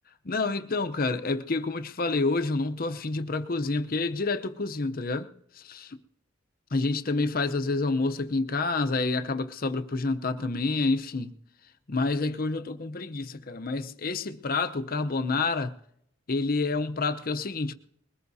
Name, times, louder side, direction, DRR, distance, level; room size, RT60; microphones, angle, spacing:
voice 1, 0.2-5.3 5.6-6.0 6.7-11.3 11.9-15.7 16.3-17.7, left 3 dB, 45° left, 0.7 m, -28 dB
21.5 x 19.0 x 2.7 m
head